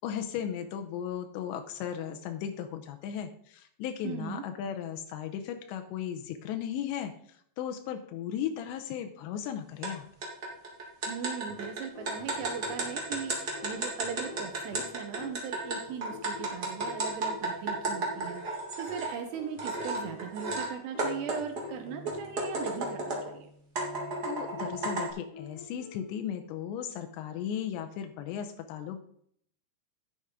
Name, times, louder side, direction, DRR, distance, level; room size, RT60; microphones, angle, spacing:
voice 1, 0.0-10.1 24.2-29.0, left 9 dB, 85° left, 6 dB, 2.9 m, -36 dB
voice 2, 4.0-4.4 11.1-23.5, right 8 dB, 80° right, 6 dB, 2.8 m, -39 dB
sound 1, 9.8-9.9 10.2-19.1 19.6-20.7 21.0-23.3 23.8-25.1, right 2 dB, 60° right, 1.0 m, -33 dB
sound 2, 11.5-23.1 25.3-26.2, left 4 dB, 65° left, 1.5 m, -48 dB
11.0 x 7.7 x 3.6 m, 0.66 s
omnidirectional pair, 5.0 m